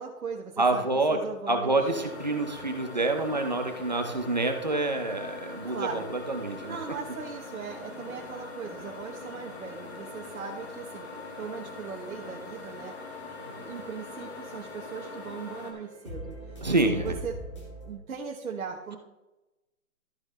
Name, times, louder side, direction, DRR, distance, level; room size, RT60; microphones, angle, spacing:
voice 1, 0.0-1.9 5.7-6.1 6.5-13.0 13.6-17.4 17.8-19.0, right 6 dB, 75° right, 0 dB, 1.3 m, -39 dB
voice 2, 0.6-6.8 16.6-17.1, right 2 dB, 30° right, 5 dB, 0.6 m, -27 dB
sound 1, 1.8-15.7, left 3 dB, 45° left, 2.0 m, -42 dB
sound 2, 11.1-17.9, right 1 dB, 20° left, 1.6 m, -45 dB
13.0 x 6.6 x 3.3 m, 1.0 s
hypercardioid pair, 180°, 43 cm